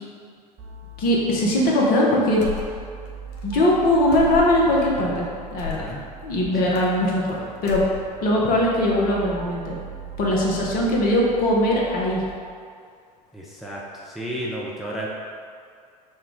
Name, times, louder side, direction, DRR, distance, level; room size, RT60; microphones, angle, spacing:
sound 1, 0.6-12.3, right 5 dB, 45° right, 1.0 m, -40 dB
voice 1, 1.0-2.4 3.4-5.3 5.5-5.9 6.2-7.3 7.6-7.8 8.2-9.7 10.2-12.2, left 1 dB, 45° left, -3 dB, 1.0 m, -20 dB
sound 2, 2.4-3.1 3.3-3.5 4.1-4.7 5.6-5.9 6.7-7.3 7.6-8.3, left 12 dB, 70° left, 0.7 m, -34 dB
voice 2, 5.7-6.0 13.3-13.8 14.1-15.1, right 1 dB, ahead, -5 dB, 0.6 m, -32 dB
5.5 x 2.3 x 3.7 m, 2.3 s
figure-of-eight pair, 70°, 21 cm